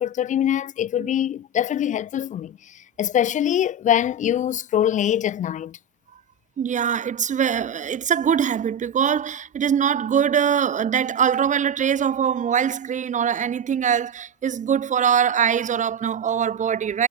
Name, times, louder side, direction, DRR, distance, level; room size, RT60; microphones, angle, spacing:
voice 1, 0.0-5.8, left 10 dB, 70° left, 0.4 m, -23 dB
voice 2, 6.6-17.1, right 8 dB, 70° right, 1.7 m, -22 dB
wide cardioid pair, 160°, 13 cm